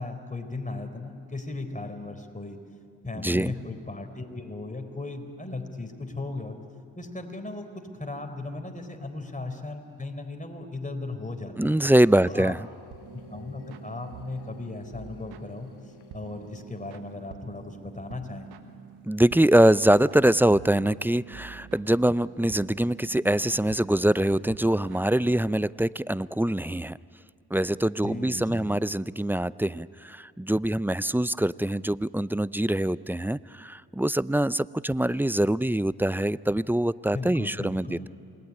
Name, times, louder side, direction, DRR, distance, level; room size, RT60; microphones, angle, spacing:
voice 1, 0.0-2.6 3.0-6.6 7.0-7.7 7.9-11.7 12.2-12.5 13.3-15.7 16.1-18.5 28.0-28.7 37.1-38.1, left 2 dB, 20° left, 6 dB, 4.3 m, -36 dB
voice 2, 3.2-3.5 11.6-12.7 19.0-27.0 27.5-38.1, right 1 dB, 5° right, 18 dB, 0.6 m, -24 dB
sound 1, 11.7-16.9, left 6 dB, 80° left, 1.6 m, -54 dB
sound 2, 12.9-25.7, right 9 dB, 80° right, 1.5 m, -48 dB
27.5 x 21.0 x 9.8 m, 2.4 s
hypercardioid pair, 40°, 39 cm